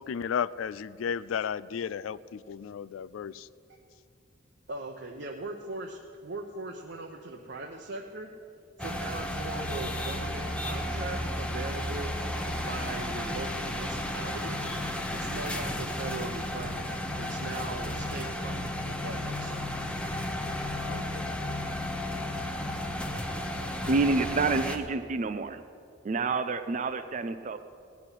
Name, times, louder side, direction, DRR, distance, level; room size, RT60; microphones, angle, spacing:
voice 1, 0.0-3.5 20.8-21.3, left 7 dB, 90° left, 17 dB, 0.3 m, -34 dB
voice 2, 4.7-8.3 8.8-12.2 12.6-14.6 15.1-16.9 17.1-19.9, right 2 dB, 60° right, 1 dB, 0.9 m, -40 dB
sound 1, 8.8-24.8, left 1 dB, 5° left, 0.9 m, -33 dB
voice 3, 23.9-25.6 26.0-27.6, right 3 dB, 40° right, 9 dB, 0.4 m, -28 dB
17.0 x 6.0 x 9.8 m, 2.4 s
head